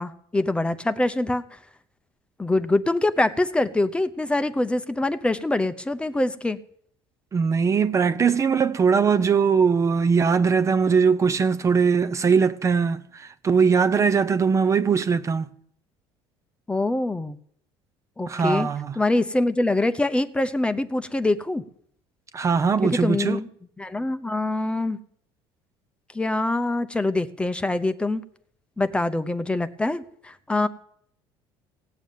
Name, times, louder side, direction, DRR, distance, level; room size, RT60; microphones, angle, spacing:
voice 1, 0.0-1.4 2.4-6.6 16.7-17.4 18.2-18.7 19.0-21.6 22.8-23.5 23.8-25.0 26.1-28.2 28.8-30.7, left 2 dB, 10° left, 0.8 m, -24 dB
voice 2, 7.3-15.5 18.3-19.0 22.3-23.4, right 5 dB, 30° right, 0.7 m, -21 dB
17.0 x 7.1 x 9.3 m
cardioid pair, 125°, 11 cm